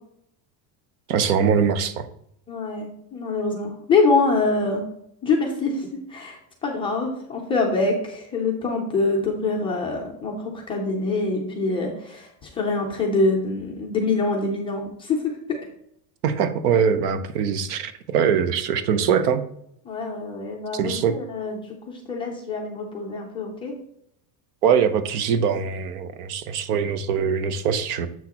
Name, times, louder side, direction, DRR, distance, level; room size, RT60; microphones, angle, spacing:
voice 1, 1.1-2.1 16.2-19.4 20.7-21.2 24.6-28.1, right 7 dB, 75° right, 11 dB, 0.9 m, -22 dB
voice 2, 2.5-4.8 5.2-15.4 19.9-23.8, left 3 dB, 10° left, -1 dB, 0.4 m, -25 dB
7.3 x 6.0 x 2.9 m, 0.72 s
cardioid pair, 180°, 47 cm